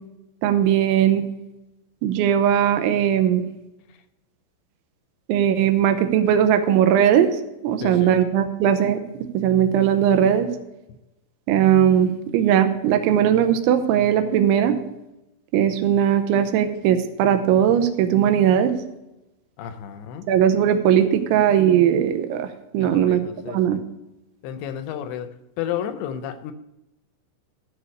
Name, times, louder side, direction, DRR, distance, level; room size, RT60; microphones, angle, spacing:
voice 1, 0.4-1.2 2.0-3.4 5.3-7.3 7.6-9.0 9.3-10.5 11.5-14.7 15.5-18.7 20.3-22.5 22.7-23.8, right 9 dB, 85° right, 9 dB, 3.1 m, -19 dB
voice 2, 7.8-8.2 19.6-20.2 22.8-23.8 24.4-25.3 25.6-26.5, left 9 dB, 80° left, 10 dB, 2.8 m, -32 dB
13.5 x 4.9 x 6.5 m, 0.93 s
omnidirectional pair, 5.3 m